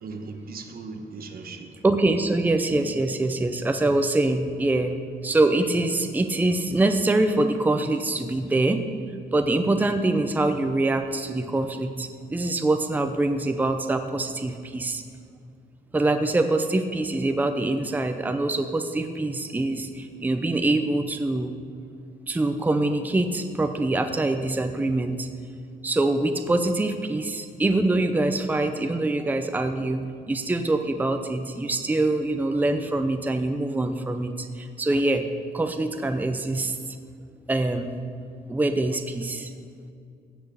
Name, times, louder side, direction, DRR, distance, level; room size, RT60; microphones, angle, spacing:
voice 1, 0.0-1.7 2.7-3.1, right 3 dB, 55° right, 6 dB, 1.2 m, -38 dB
voice 2, 1.8-5.0 5.2-8.8 9.3-15.0 15.9-21.5 22.3-25.3 25.8-35.2 35.5-36.8 37.5-38.0 38.5-39.5, right 2 dB, 10° right, 7 dB, 0.6 m, -24 dB
15.5 x 6.1 x 8.4 m, 2.4 s
wide cardioid pair, 160°, 18 cm